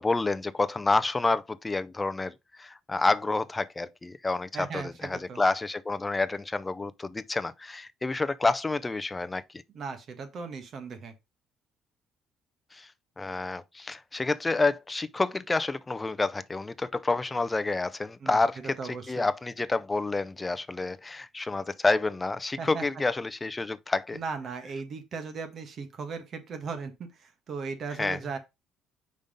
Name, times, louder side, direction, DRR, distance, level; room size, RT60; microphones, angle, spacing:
voice 1, 0.0-9.4 12.7-12.9 13.2-24.2 28.0-28.2, left 3 dB, 15° left, 0.4 m, -29 dB
voice 2, 4.5-5.4 9.7-11.1 18.2-19.3 22.6-22.8 24.1-28.4, right 5 dB, 50° right, 1.3 m, -37 dB
5.3 x 3.5 x 5.2 m
cardioid pair, 120°, 0 cm